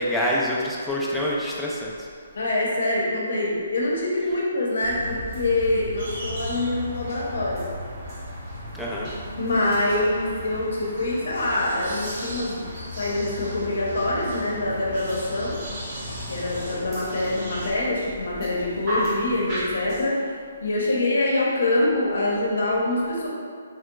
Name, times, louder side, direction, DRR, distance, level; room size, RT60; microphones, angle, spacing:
voice 1, 0.0-2.1 8.7-9.1, equal, ahead, -7 dB, 0.4 m, -26 dB
voice 2, 2.3-7.6 9.4-12.7 13.0-15.6 16.3-20.2 20.6-23.3, left 2 dB, 75° left, -4 dB, 0.8 m, -25 dB
sound 1, 4.8-20.1, equal, 25° right, 0.8 m, -37 dB
sound 2, 6.0-17.7, left 1 dB, 60° right, 1.1 m, -38 dB
3.2 x 2.8 x 2.3 m, 2.1 s
hypercardioid pair, 155°, 0 cm